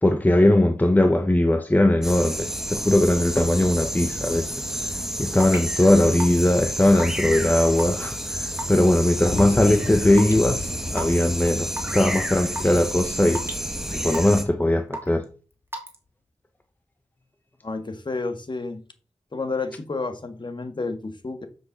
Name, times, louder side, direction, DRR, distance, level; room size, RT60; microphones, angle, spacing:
voice 1, 0.0-4.5 5.2-13.4 13.9-15.2, left 1 dB, 15° left, 0.9 m, -20 dB
sound 1, 2.0-14.4, equal, 5° right, 1.8 m, -30 dB
Raindrop / Water tap faucet / Drip, 5.4-5.6 6.2-6.5 7.0-7.3 7.8-8.1 8.6-8.8 9.4-9.5 10.2-10.4 10.9-11.1 11.8-12.0 12.6-12.8 13.3-13.6 14.1-14.5 14.9-15.2 15.7-16.0, right 1 dB, 20° right, 2.6 m, -32 dB
sound 2, 9.2-13.6, left 3 dB, 60° left, 2.1 m, -35 dB
voice 2, 17.6-18.8 19.3-21.5, left 3 dB, 40° left, 1.6 m, -30 dB
7.6 x 6.6 x 7.2 m
wide cardioid pair, 115°, 12 cm